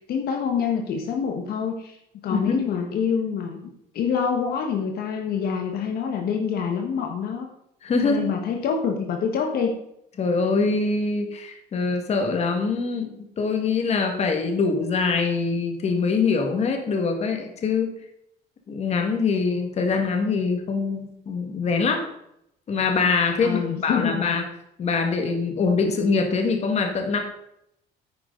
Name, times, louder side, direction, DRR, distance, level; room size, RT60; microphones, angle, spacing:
voice 1, 0.0-2.0 2.2-3.6 3.9-7.5 8.0-9.7 23.4-24.2, left 6 dB, 65° left, 3 dB, 1.5 m, -26 dB
voice 2, 2.3-2.6 7.8-8.2 10.2-17.9 18.7-22.1 22.7-24.4 24.8-27.2, left 4 dB, 40° left, 4 dB, 1.9 m, -24 dB
9.8 x 9.3 x 3.9 m, 0.77 s
cardioid pair, 145°, 17 cm